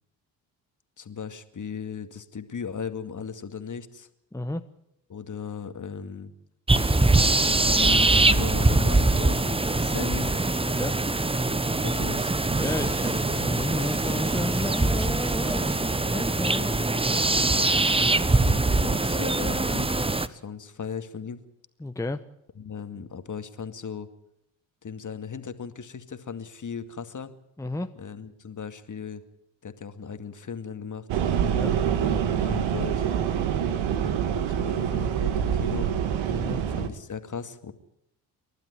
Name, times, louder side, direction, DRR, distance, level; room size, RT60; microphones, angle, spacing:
voice 1, 1.0-4.1 5.1-6.3 7.4-10.3 11.8-12.3 18.4-19.9 20.3-21.4 22.6-24.1 24.8-27.3 28.0-29.2 29.6-31.1 32.0-33.1 34.3-35.9 36.4-37.7, left 6 dB, 40° left, 9 dB, 2.2 m, -37 dB
voice 2, 4.3-4.6 10.6-11.0 12.6-16.9 21.8-22.2 27.6-27.9 31.5-31.8 36.3-36.9, left 1 dB, 5° left, 8 dB, 1.1 m, -32 dB
sound 1, 6.7-20.3, right 2 dB, 10° right, 1.1 m, -23 dB
sound 2, 12.2-16.0, right 3 dB, 25° right, 2.5 m, -38 dB
sound 3, 31.1-36.9, right 8 dB, 65° right, 2.0 m, -26 dB
29.0 x 12.0 x 9.7 m, 0.79 s
hypercardioid pair, 50°, 49 cm